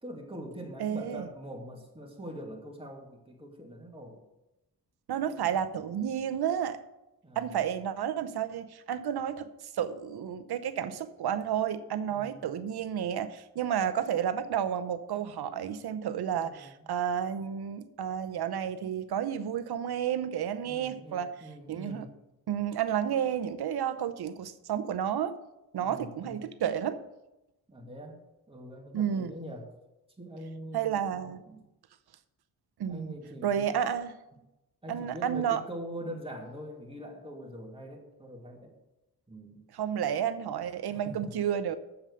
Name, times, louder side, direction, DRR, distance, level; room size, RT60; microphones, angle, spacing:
voice 1, 0.0-4.2 5.3-5.5 7.2-7.5 12.1-12.4 16.3-16.7 20.6-22.1 25.8-26.5 27.7-28.2 28.5-29.7 30.2-31.6 32.9-33.8 34.8-38.8 39.3-39.6 40.9-41.3, equal, 15° right, -1 dB, 2.4 m, -43 dB
voice 2, 0.8-1.2 5.1-6.8 7.4-21.3 21.7-22.1 22.5-25.4 25.7-27.0 28.9-29.3 30.7-31.4 32.8-33.2 33.4-34.2 34.9-35.6 39.7-41.8, right 9 dB, 80° right, 11 dB, 0.8 m, -31 dB
7.5 x 7.2 x 6.4 m, 0.95 s
cardioid pair, 60°, 38 cm